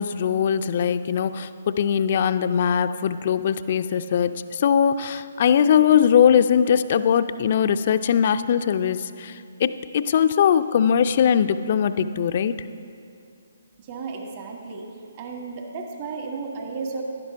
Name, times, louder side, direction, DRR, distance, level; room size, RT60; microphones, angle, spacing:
voice 1, 0.0-12.5, left 8 dB, 45° left, 12 dB, 0.4 m, -21 dB
voice 2, 13.8-14.8 15.1-17.0, right 4 dB, 35° right, 1 dB, 1.4 m, -33 dB
15.0 x 12.0 x 2.6 m, 2.5 s
figure-of-eight pair, 135°, 0 cm